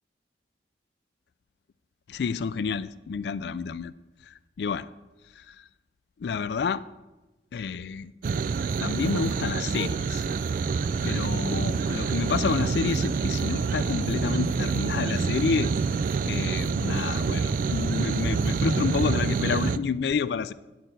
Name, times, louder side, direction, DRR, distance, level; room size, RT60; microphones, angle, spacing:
voice 1, 2.1-3.9 4.6-4.9 6.2-6.8 7.5-8.1 8.8-10.2 11.0-15.7 16.3-20.5, left 5 dB, 70° left, 15 dB, 0.3 m, -29 dB
sound 1, 8.2-19.8, right 5 dB, 50° right, 0.3 m, -27 dB
11.0 x 4.3 x 7.9 m, 1.1 s
head